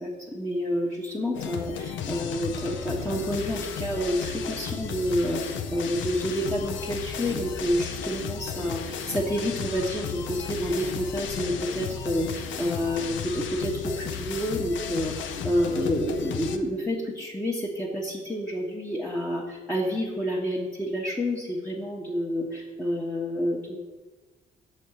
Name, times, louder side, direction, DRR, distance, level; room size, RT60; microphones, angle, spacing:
voice 1, 0.0-23.8, equal, 5° left, -5 dB, 1.2 m, -29 dB
sound 1, 1.3-16.6, left 7 dB, 75° left, 0.6 m, -34 dB
6.5 x 4.3 x 6.5 m, 1.2 s
cardioid pair, 90°, 20 cm